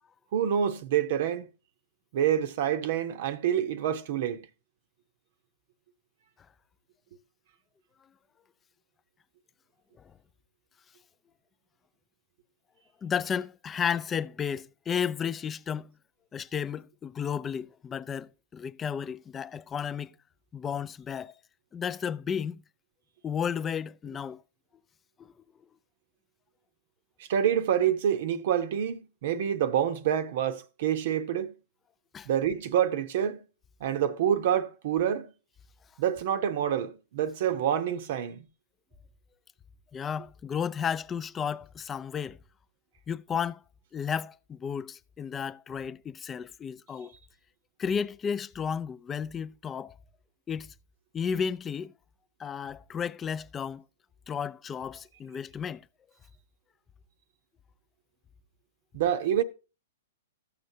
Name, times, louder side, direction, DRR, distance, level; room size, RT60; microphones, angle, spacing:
voice 1, 0.3-1.5 2.1-4.5 27.2-31.5 32.3-33.4 33.8-35.3 36.0-38.4 58.9-59.4, right 9 dB, 55° right, 0.7 m, -27 dB
voice 2, 13.0-15.9 16.3-20.1 20.5-21.3 21.7-22.6 23.2-24.4 25.2-25.3 32.1-32.3 39.9-42.4 43.1-43.6 43.9-47.1 47.8-50.0 50.5-50.7 51.1-51.9 52.4-53.8 54.3-55.9, left 7 dB, 20° left, 0.3 m, -33 dB
14.0 x 6.7 x 2.7 m
hypercardioid pair, 120°, 0 cm